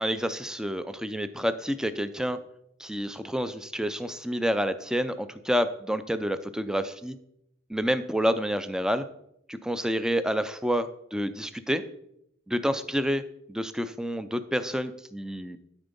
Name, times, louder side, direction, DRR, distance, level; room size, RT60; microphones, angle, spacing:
voice 1, 0.0-2.4 2.8-7.2 7.7-9.0 9.5-11.8 12.5-13.2 13.5-15.6, equal, 5° right, 11 dB, 0.5 m, -28 dB
12.5 x 4.4 x 5.3 m, 0.77 s
head